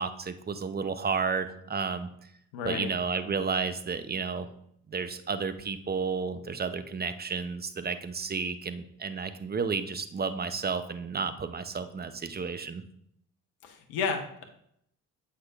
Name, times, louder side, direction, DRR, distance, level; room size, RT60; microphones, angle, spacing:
voice 1, 0.0-2.1 2.6-4.5 4.9-12.8, right 5 dB, 25° right, 11 dB, 0.7 m, -32 dB
voice 2, 2.5-2.9 13.6-14.4, left 5 dB, 80° left, 4 dB, 0.9 m, -32 dB
7.7 x 5.8 x 2.4 m, 0.72 s
hypercardioid pair, 50°, 38 cm